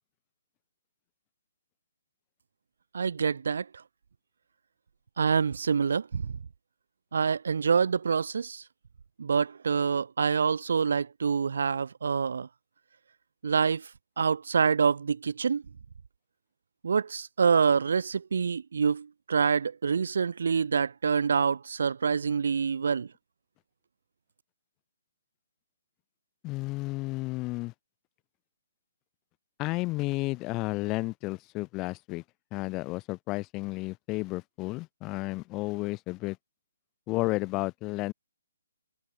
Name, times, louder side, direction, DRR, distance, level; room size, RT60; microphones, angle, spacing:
voice 1, 2.9-3.7 5.2-6.3 7.1-8.6 9.2-12.5 13.4-13.9 14.2-15.6 16.8-23.1, right 6 dB, 65° right, 3.9 m, -26 dB
voice 2, 26.4-27.7 29.6-32.2 32.5-36.4 37.1-38.1, left 21 dB, 20° left, 7.5 m, -32 dB
hypercardioid pair, 160°, 0 cm